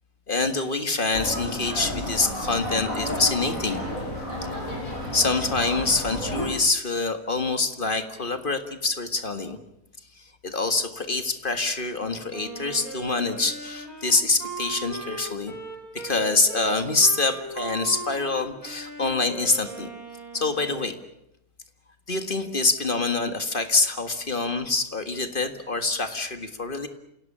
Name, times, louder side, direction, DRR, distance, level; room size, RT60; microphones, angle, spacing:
voice 1, 0.3-3.9 5.1-9.6 10.2-15.5 15.9-19.9 20.3-21.0 22.1-26.9, left 3 dB, 35° left, 9 dB, 1.9 m, -25 dB
sound 1, 1.1-6.5, left 1 dB, 65° left, 5.6 m, -31 dB
Wind instrument woodwind instrument, 12.3-20.8, right 3 dB, 75° right, 6.6 m, -38 dB
29.0 x 17.0 x 8.8 m, 0.82 s
omnidirectional pair, 1.6 m